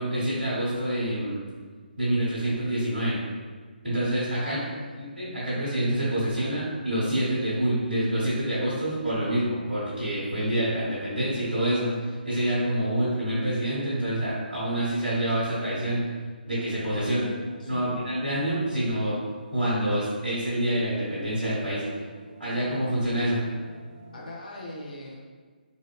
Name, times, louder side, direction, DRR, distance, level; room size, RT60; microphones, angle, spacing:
voice 1, 0.0-1.4 2.0-3.2 3.8-4.6 5.0-16.0 16.4-17.2 17.6-19.2 19.5-21.8 22.4-23.4, right 1 dB, 60° right, -12 dB, 1.3 m, -27 dB
voice 2, 4.3-5.0 17.0-18.0 24.1-25.2, left 1 dB, 50° left, -2 dB, 0.7 m, -39 dB
sound 1, 16.5-24.3, right 2 dB, 25° right, 0.7 m, -47 dB
4.0 x 2.5 x 2.3 m, 1.5 s
figure-of-eight pair, 140°, 5 cm